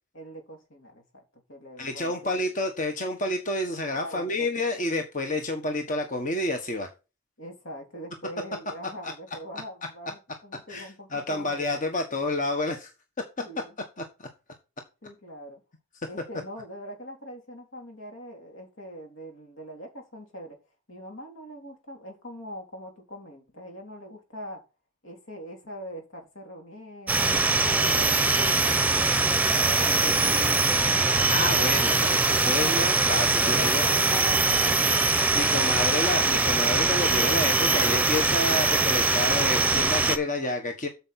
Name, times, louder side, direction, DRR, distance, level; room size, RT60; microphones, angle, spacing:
voice 1, 0.1-1.2 1.5-2.3 4.0-4.6 7.4-11.7 13.4-13.8 15.0-15.6 16.1-20.6 20.9-24.6 25.0-28.8 29.5-31.4 32.5-33.1 33.4-35.0, equal, 70° left, 3.6 m, -42 dB
voice 2, 1.8-6.9 9.0-9.1 10.7-12.9 14.0-14.3 31.3-33.8 35.3-40.9, left 2 dB, 40° left, 1.4 m, -29 dB
sound 1, 27.1-40.2, right 3 dB, 10° right, 1.0 m, -22 dB
8.6 x 6.9 x 4.3 m
head